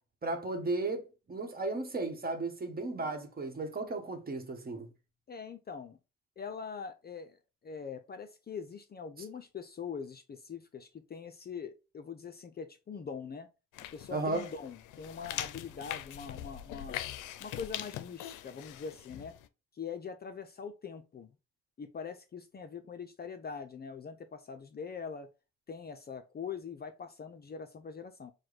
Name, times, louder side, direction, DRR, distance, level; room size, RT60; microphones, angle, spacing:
voice 1, 0.2-4.9 14.1-14.5, right 2 dB, 30° right, 1.1 m, -35 dB
voice 2, 5.3-6.0 6.4-7.4 7.6-13.5 13.9-17.0 17.4-19.3 19.7-21.3 21.8-25.3 25.7-28.3, left 6 dB, 35° left, 0.5 m, -43 dB
sound 1, 13.7-19.5, left 12 dB, 85° left, 0.5 m, -42 dB
4.7 x 2.2 x 3.9 m
cardioid pair, 90°, 30 cm